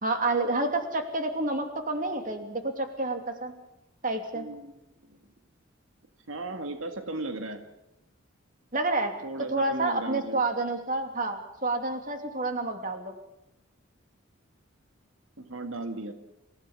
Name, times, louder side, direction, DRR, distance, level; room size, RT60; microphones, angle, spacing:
voice 1, 0.0-3.5 4.0-4.5 8.7-9.1 9.5-13.1, right 2 dB, 40° right, 5 dB, 2.8 m, -29 dB
voice 2, 4.3-4.8 5.1-5.2 6.3-7.6 9.2-10.4 15.4-16.1, right 2 dB, 80° right, 6 dB, 1.9 m, -36 dB
27.5 x 16.0 x 7.3 m, 0.91 s
head